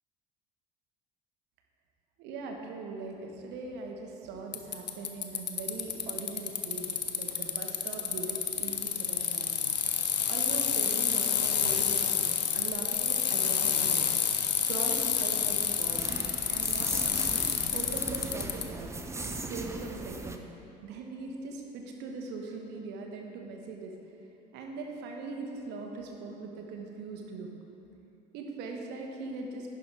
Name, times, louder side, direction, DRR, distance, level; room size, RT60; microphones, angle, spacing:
voice 1, 2.2-9.5 10.2-14.1 14.5-16.1 16.5-17.3 17.7-18.9 19.5-20.4 20.8-23.9 24.5-27.5 28.3-29.7, right 3 dB, 55° right, 2 dB, 1.4 m, -40 dB
Bicycle, 4.5-18.6, left 7 dB, 80° left, 0.7 m, -29 dB
sound 1, 14.4-20.4, right 3 dB, 15° right, 0.7 m, -39 dB
11.0 x 10.5 x 3.5 m, 2.8 s
figure-of-eight pair, 60°, 21 cm